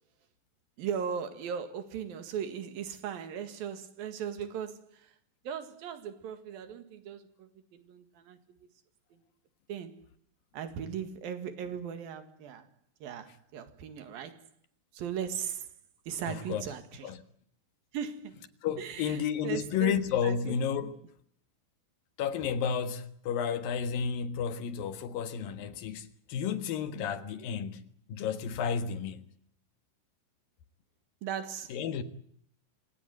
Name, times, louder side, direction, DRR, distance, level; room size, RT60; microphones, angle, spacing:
voice 1, 0.8-5.2 5.5-8.4 9.7-10.0 10.5-12.7 13.0-14.5 14.9-15.7 16.1-17.1 17.9-18.5 18.8-20.0 20.2-20.8 27.1-27.2 31.2-31.7, right 8 dB, 85° right, 3.7 m, -38 dB
voice 2, 16.3-16.6 17.0-17.2 18.6-21.0 22.2-29.3 31.7-32.0, left 7 dB, 80° left, 3.3 m, -32 dB
26.0 x 17.5 x 9.3 m
omnidirectional pair, 4.1 m